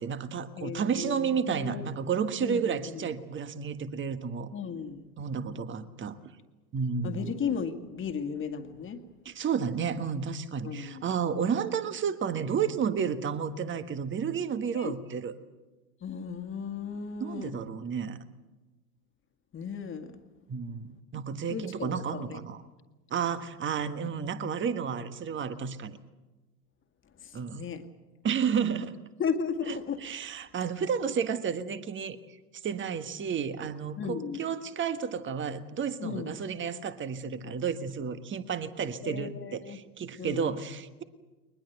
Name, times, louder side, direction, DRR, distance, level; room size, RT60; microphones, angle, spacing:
voice 1, 0.0-4.5 5.2-6.2 6.7-7.3 9.2-15.3 17.2-18.2 20.5-22.6 23.1-26.0 27.3-27.6 28.2-29.0 29.7-32.2 32.6-41.0, right 6 dB, 25° right, 11 dB, 1.5 m, -31 dB
voice 2, 0.6-1.9 2.4-3.1 4.5-5.1 7.0-9.1 10.6-11.0 14.7-14.9 16.0-17.6 19.5-20.2 21.5-22.4 27.2-27.8 29.2-30.0 34.0-34.4 36.0-36.3 39.0-39.8 40.2-40.5, left 6 dB, 25° left, 7 dB, 2.0 m, -35 dB
21.5 x 21.0 x 8.1 m, 1.2 s
hypercardioid pair, 95°, 50 cm